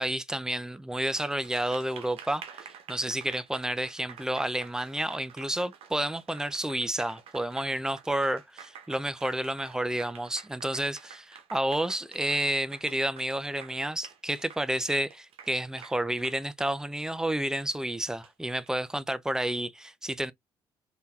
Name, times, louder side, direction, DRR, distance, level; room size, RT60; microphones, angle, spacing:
voice 1, 0.0-20.3, right 1 dB, 5° right, 0.5 m, -30 dB
Applause, 1.0-18.7, right 7 dB, 70° right, 0.9 m, -49 dB
3.6 x 2.8 x 2.4 m
supercardioid pair, 75°, 10 cm